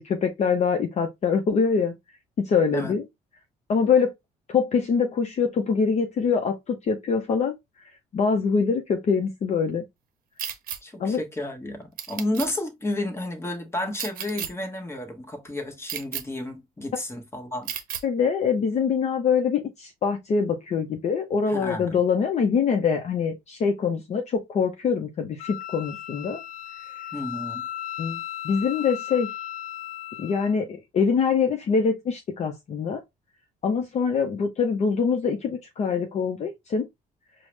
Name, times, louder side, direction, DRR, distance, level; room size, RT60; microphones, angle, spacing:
voice 1, 0.0-2.0 2.4-3.0 3.7-4.1 4.5-7.5 8.1-9.8 11.0-11.2 18.0-26.4 28.0-29.3 30.2-33.0 33.6-36.8, left 5 dB, 40° left, 0.6 m, -24 dB
sound 1, 10.4-10.8 12.0-12.5 13.9-14.5 15.9-16.2 17.7-18.0, right 9 dB, 60° right, 0.7 m, -32 dB
voice 2, 10.8-17.7 21.5-22.0 27.1-27.6, left 1 dB, 15° left, 1.0 m, -32 dB
Wind instrument woodwind instrument, 25.4-30.5, left 11 dB, 90° left, 0.4 m, -36 dB
4.6 x 2.0 x 3.2 m
cardioid pair, 110°, 17 cm